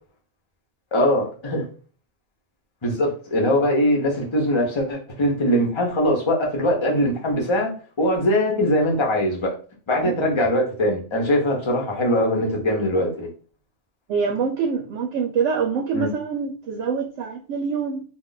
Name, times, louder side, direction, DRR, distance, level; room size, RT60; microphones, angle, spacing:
voice 1, 0.9-1.6 2.8-7.7 8.0-9.5 9.9-13.3 15.9-16.1, equal, 30° left, 0 dB, 0.7 m, -21 dB
voice 2, 14.1-18.0, right 6 dB, 80° right, 1 dB, 0.9 m, -25 dB
2.5 x 2.3 x 3.8 m, 0.41 s
omnidirectional pair, 1.3 m